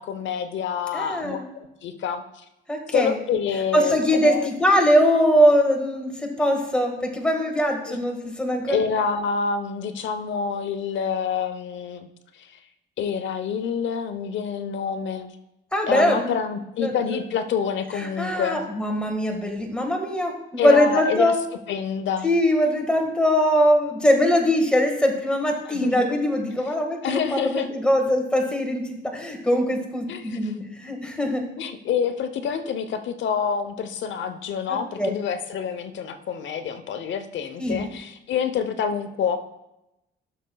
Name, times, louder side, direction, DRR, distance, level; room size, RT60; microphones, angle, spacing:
voice 1, 0.0-2.2 2.9-4.5 7.1-7.2 7.9-8.0 8.7-12.1 12.3-12.6 13.0-15.4 15.9-18.6 20.6-21.3 21.7-22.3 25.7-26.1 27.0-27.7 30.1-30.5 31.6-39.4, left 6 dB, 70° left, 9 dB, 0.9 m, -27 dB
voice 2, 0.9-1.4 2.7-3.2 3.7-8.8 15.7-16.4 16.8-17.2 17.9-21.4 22.2-31.4 34.7-35.1 37.6-37.9, equal, 5° left, 2 dB, 1.7 m, -22 dB
14.5 x 6.6 x 2.3 m, 0.90 s
cardioid pair, 90°, 20 cm